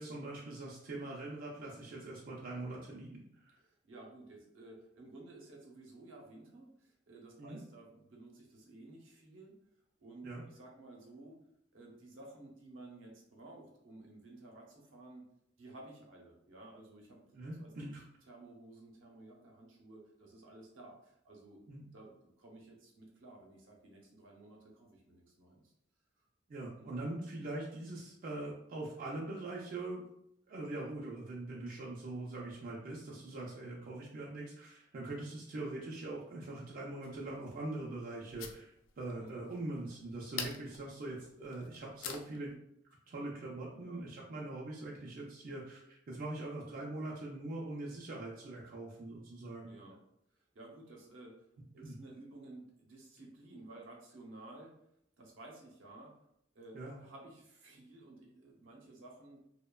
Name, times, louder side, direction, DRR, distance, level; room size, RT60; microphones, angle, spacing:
voice 1, 0.0-3.6 7.4-7.6 10.2-10.4 17.3-18.0 21.7-21.8 26.5-30.0 30.5-42.6 43.1-49.7 51.8-52.0 56.7-57.0, right 2 dB, 45° right, -4 dB, 0.4 m, -42 dB
voice 2, 3.6-9.6 10.0-11.4 11.7-15.2 15.6-17.9 18.3-21.6 21.9-25.7 26.2-26.3 26.8-26.9 39.2-39.4 43.8-44.0 49.7-50.0 50.3-51.4 51.7-54.7 55.2-56.2 56.5-59.4, right 2 dB, 80° right, -1 dB, 0.7 m, -54 dB
sound 1, 37.0-42.5, left 7 dB, 75° left, 0.3 m, -48 dB
2.7 x 2.1 x 2.2 m, 0.75 s
head